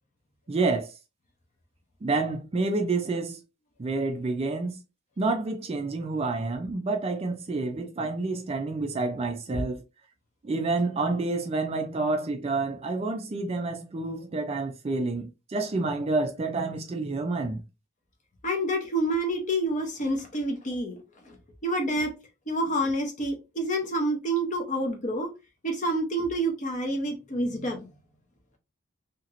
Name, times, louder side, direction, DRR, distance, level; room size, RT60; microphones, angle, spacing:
voice 1, 0.5-0.9 2.0-3.4 3.8-4.8 5.2-9.8 10.4-17.6, right 3 dB, 25° right, 0.3 m, -28 dB
voice 2, 18.4-21.0 21.2-21.4 21.6-22.1 22.5-25.3 25.6-27.8, right 1 dB, 35° left, 0.7 m, -28 dB
2.9 x 2.8 x 2.5 m
head